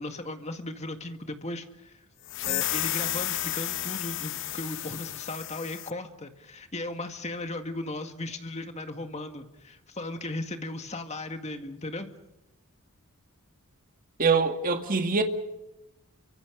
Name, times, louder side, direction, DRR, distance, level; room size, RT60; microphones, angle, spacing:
voice 1, 0.0-1.9 2.4-12.1, left 2 dB, 30° left, 2.0 m, -36 dB
sound 1, 2.3-5.9, left 13 dB, 60° left, 0.9 m, -32 dB
voice 2, 14.2-15.2, right 4 dB, 40° right, 2.2 m, -24 dB
29.5 x 24.5 x 5.2 m
head